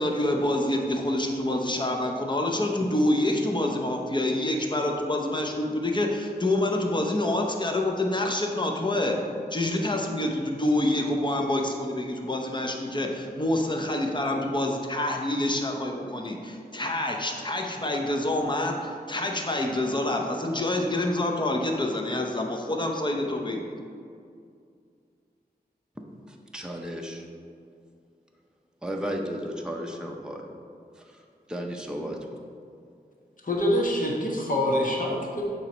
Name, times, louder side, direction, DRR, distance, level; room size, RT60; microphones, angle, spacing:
voice 1, 0.0-9.2 9.5-23.7, left 1 dB, 25° left, 2 dB, 0.8 m, -27 dB
voice 2, 26.0-27.2 28.8-30.5 31.0-32.3, equal, 5° right, 1 dB, 0.7 m, -35 dB
voice 3, 33.4-35.4, left 1 dB, 55° left, -2 dB, 1.2 m, -25 dB
7.4 x 3.0 x 6.1 m, 2.3 s
wide cardioid pair, 75°, 17 cm